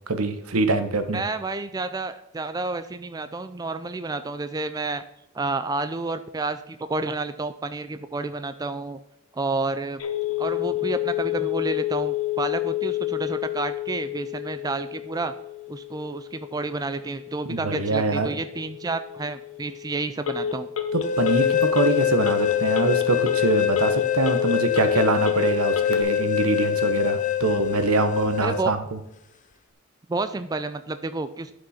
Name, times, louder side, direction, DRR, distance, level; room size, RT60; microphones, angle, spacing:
voice 1, 0.1-1.2 17.4-18.3 20.9-29.0, right 3 dB, 90° right, 9 dB, 1.0 m, -24 dB
voice 2, 1.1-5.0 5.3-9.0 9.3-10.0 10.4-15.3 15.7-20.7 28.4-28.7 30.1-31.5, right 3 dB, 15° right, 11 dB, 0.3 m, -30 dB
Telephone, 10.0-26.0, left 10 dB, 70° left, 1.0 m, -30 dB
sound 1, 21.0-28.6, left 10 dB, 35° left, 0.5 m, -24 dB
11.5 x 5.2 x 4.2 m, 0.85 s
head